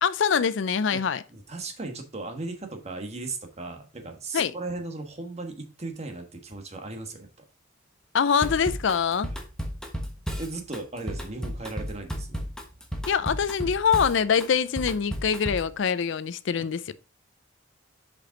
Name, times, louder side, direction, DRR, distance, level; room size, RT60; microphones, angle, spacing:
voice 1, 0.0-1.2 4.3-4.5 8.1-9.3 13.1-16.9, left 6 dB, 65° left, 0.4 m, -24 dB
voice 2, 1.3-7.3 10.4-12.4 16.9-17.0, right 3 dB, 35° right, 1.3 m, -36 dB
Drum kit / Drum, 8.4-15.7, equal, 5° left, 1.1 m, -33 dB
7.4 x 5.1 x 3.8 m
head